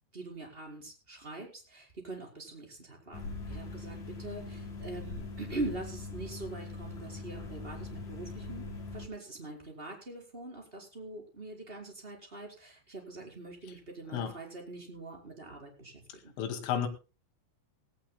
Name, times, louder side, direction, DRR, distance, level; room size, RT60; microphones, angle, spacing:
voice 1, 0.1-8.7 8.9-16.3, right 2 dB, 10° right, 4.0 m, -43 dB
sound 1, 3.1-9.1, left 3 dB, 40° left, 4.0 m, -41 dB
voice 2, 16.4-16.9, left 8 dB, 75° left, 4.5 m, -32 dB
19.0 x 17.5 x 2.2 m
omnidirectional pair, 5.7 m